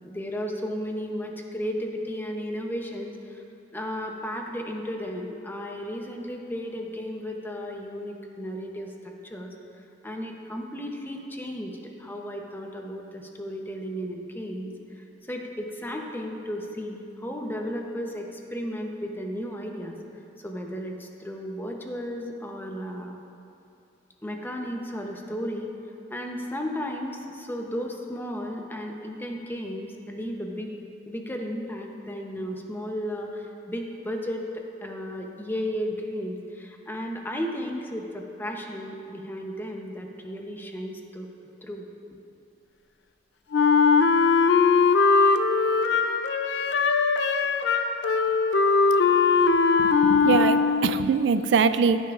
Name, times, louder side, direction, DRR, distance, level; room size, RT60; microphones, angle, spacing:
voice 1, 0.0-3.4 3.7-9.5 10.0-20.0 20.4-23.2 24.2-25.7 26.1-30.8 31.1-41.3 41.6-41.9, equal, 10° left, 2 dB, 0.8 m, -34 dB
Wind instrument woodwind instrument, 43.5-51.1, left 4 dB, 75° left, 0.5 m, -20 dB
voice 2, 49.8-52.0, right 5 dB, 80° right, 12 dB, 0.3 m, -23 dB
16.0 x 9.1 x 2.5 m, 2.7 s
head